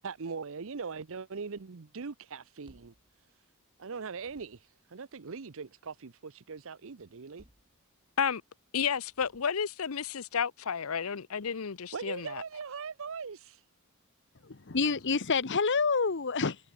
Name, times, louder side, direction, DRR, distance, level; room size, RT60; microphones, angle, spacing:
voice 1, 0.0-2.9 3.8-7.4 11.9-13.6, right 5 dB, 65° right, 0.7 m, -40 dB
sound 1, 2.6-3.8 4.1-4.9 7.1-8.3 9.0-9.9, equal, 25° right, 6.6 m, -64 dB
voice 2, 8.7-12.4, left 7 dB, 75° left, 0.7 m, -32 dB
voice 3, 14.4-16.6, left 4 dB, 55° left, 1.1 m, -28 dB
head